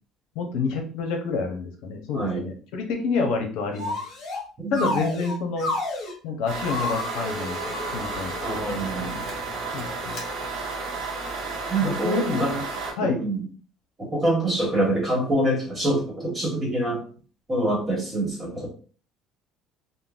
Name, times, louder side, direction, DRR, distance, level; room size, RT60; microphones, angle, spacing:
voice 1, 0.3-4.0 4.7-5.7 6.2-7.6 7.9-9.3 9.7-10.2 11.8-12.6 13.0-13.3, left 4 dB, 75° left, 3 dB, 0.7 m, -28 dB
sound 1, 3.8-4.4 4.7-6.1 6.6-8.4 9.1-9.3 10.1-10.2, left 2 dB, 45° left, 1.0 m, -31 dB
voice 2, 4.6-5.0 8.4-9.1 11.7-12.6 13.0-13.4 14.0-17.0 17.5-18.7, right 1 dB, 20° right, -1 dB, 1.2 m, -25 dB
sound 2, 6.5-12.9, right 3 dB, 70° right, 0.9 m, -32 dB
3.8 x 2.1 x 2.4 m, 0.41 s
cardioid pair, 150°, 0 cm